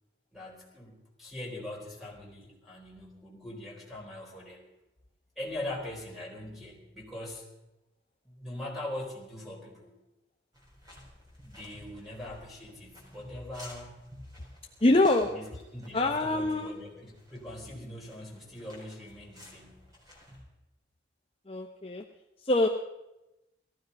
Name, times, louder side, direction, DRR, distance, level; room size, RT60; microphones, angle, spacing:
voice 1, 0.3-4.6 5.4-7.5 8.2-9.9 11.4-14.1 15.3-19.8, left 1 dB, ahead, -2 dB, 4.1 m, -42 dB
sound 1, 10.5-20.4, left 1 dB, 20° right, 4.4 m, -52 dB
voice 2, 14.8-15.3 15.9-16.7 21.5-22.0 22.4-22.7, left 2 dB, 30° left, 2 dB, 0.8 m, -24 dB
18.5 x 15.0 x 5.3 m, 0.95 s
head